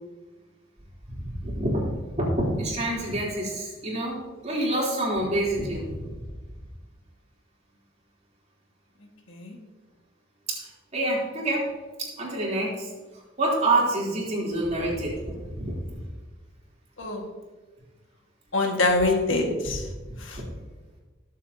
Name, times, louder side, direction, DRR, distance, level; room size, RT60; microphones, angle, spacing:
voice 1, 1.2-1.8 2.1-6.1 10.5-11.7 12.0-12.9 13.4-16.0 20.3-20.5, right 1 dB, 35° right, -4 dB, 3.5 m, -27 dB
voice 2, 18.5-19.9 20.2-20.4, left 2 dB, 80° left, 2 dB, 1.9 m, -25 dB
20.5 x 7.5 x 2.9 m, 1.2 s
head